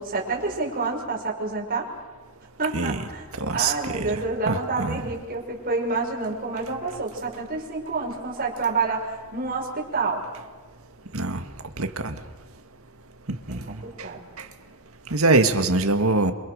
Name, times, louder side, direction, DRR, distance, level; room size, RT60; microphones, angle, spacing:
voice 1, 0.0-1.9 2.6-10.2 13.5-13.6 13.8-14.3, right 3 dB, 40° right, -1 dB, 6.4 m, -28 dB
voice 2, 3.4-4.2 4.5-5.0 11.1-11.4 11.8-12.2 13.5-13.6 15.1-16.3, right 3 dB, 70° right, 7 dB, 2.0 m, -23 dB
28.0 x 27.0 x 6.6 m, 1.3 s
head